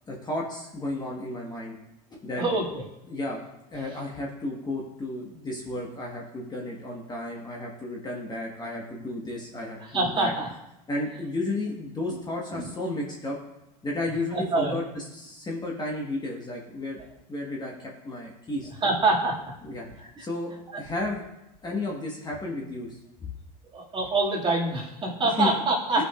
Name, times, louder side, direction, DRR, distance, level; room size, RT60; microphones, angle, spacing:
voice 1, 0.1-1.7 2.1-2.4 3.1-3.4 3.7-10.3 10.9-13.4 13.8-17.0 17.3-18.7 19.6-19.9 20.2-21.2 21.6-23.3 25.4-25.5 26.0-26.1, left 2 dB, 20° left, -2 dB, 1.5 m, -33 dB
voice 2, 9.8-10.5 12.5-12.7 14.3-14.8 18.8-19.4 20.0-20.2 23.7-26.0, right 2 dB, 25° right, -4 dB, 2.4 m, -25 dB
15.0 x 5.3 x 2.5 m, 0.92 s
hypercardioid pair, 95°, 20 cm